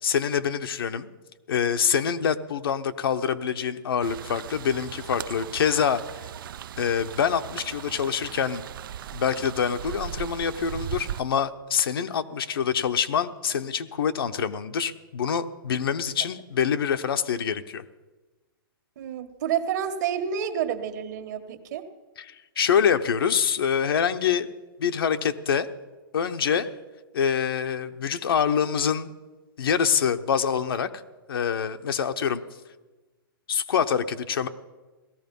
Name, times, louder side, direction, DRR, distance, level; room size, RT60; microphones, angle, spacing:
voice 1, 0.0-1.1 1.5-6.0 6.8-8.6 9.1-17.8 22.2-24.5 24.8-25.7 26.1-26.7 27.1-29.1 29.6-30.9 31.3-32.4 33.5-34.5, left 7 dB, 80° left, 9 dB, 1.0 m, -25 dB
sound 1, 4.0-11.2, right 10 dB, 65° right, 0.4 m, -38 dB
voice 2, 19.0-21.8, right 8 dB, 50° right, 7 dB, 1.5 m, -29 dB
17.0 x 13.5 x 5.4 m, 1.2 s
hypercardioid pair, 155°, 12 cm